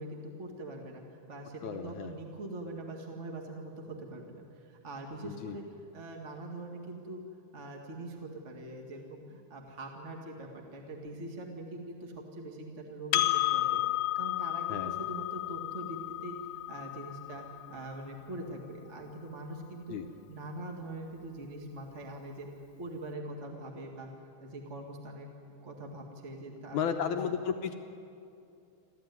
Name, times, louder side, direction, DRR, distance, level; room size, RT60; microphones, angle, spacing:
voice 1, 0.0-5.6 5.9-7.2 7.5-13.8 14.1-16.3 16.7-20.0 20.3-22.5 22.8-24.1 24.4-25.3 25.6-27.2, right 1 dB, 30° right, 1 dB, 1.5 m, -43 dB
voice 2, 1.6-2.1 5.2-5.6 14.7-15.0 19.9-20.1 26.7-27.7, left 7 dB, 70° left, 5 dB, 2.0 m, -33 dB
Percussion, 13.1-17.9, left 16 dB, 90° left, 2.7 m, -32 dB
29.0 x 12.0 x 9.4 m, 2.6 s
omnidirectional pair, 4.1 m